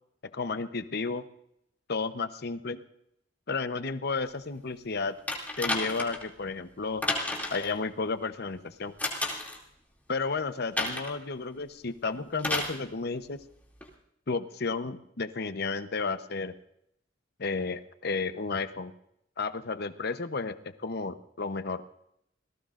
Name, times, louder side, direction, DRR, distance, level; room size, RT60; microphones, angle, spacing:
voice 1, 0.3-1.2 1.9-2.8 3.5-5.2 5.6-7.0 7.5-8.9 10.1-13.4 14.3-16.5 17.4-18.9 19.4-21.8, left 4 dB, 60° left, 10 dB, 0.9 m, -32 dB
sound 1, 5.3-6.3 7.0-7.7 9.0-9.6 10.8-11.2 12.4-12.8 13.8-13.9, left 2 dB, 10° left, 2.6 m, -31 dB
27.5 x 18.5 x 2.5 m, 0.77 s
head